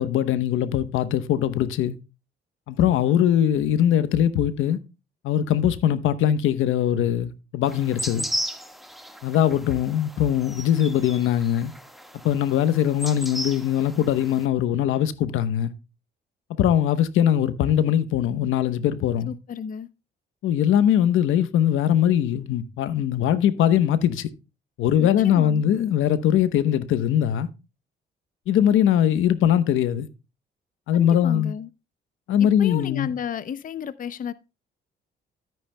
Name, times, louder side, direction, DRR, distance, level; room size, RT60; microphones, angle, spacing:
voice 1, 0.0-1.9 2.7-4.8 5.2-8.3 9.2-11.7 12.2-15.7 16.6-19.3 20.4-24.3 24.8-27.5 28.5-30.1 30.9-31.5 32.3-33.1, left 10 dB, 85° left, 1.0 m, -21 dB
sound 1, 7.7-14.4, equal, ahead, 1.6 m, -36 dB
voice 2, 19.3-19.9 25.0-25.8 30.9-31.7 32.4-34.3, left 7 dB, 45° left, 0.6 m, -33 dB
13.0 x 9.2 x 2.2 m
cardioid pair, 90°, 20 cm